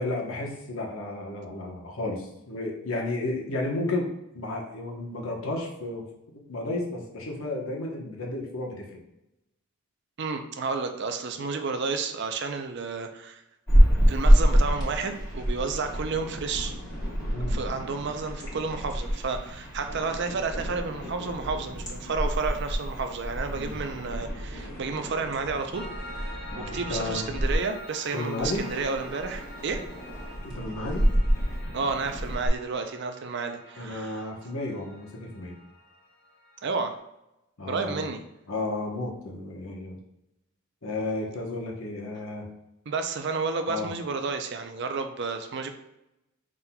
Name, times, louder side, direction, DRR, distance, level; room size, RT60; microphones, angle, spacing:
voice 1, 0.0-6.1 6.5-9.0 17.3-17.6 23.5-23.8 26.5-27.4 28.1-28.7 30.5-31.1 33.8-35.6 37.6-38.1 38.5-40.0 40.8-42.5 43.7-43.9, left 2 dB, 70° left, 0 dB, 1.0 m, -32 dB
voice 2, 10.2-13.4 14.1-16.7 17.5-25.9 26.6-29.8 31.7-34.2 36.6-36.9 37.7-38.2 42.9-45.7, right 4 dB, 55° right, 6 dB, 0.5 m, -31 dB
sound 1, 13.7-27.6 28.4-32.5, equal, 20° left, 1.4 m, -27 dB
Piano, 25.7-37.0, left 1 dB, 45° left, 0.7 m, -46 dB
5.7 x 3.7 x 2.3 m, 0.89 s
head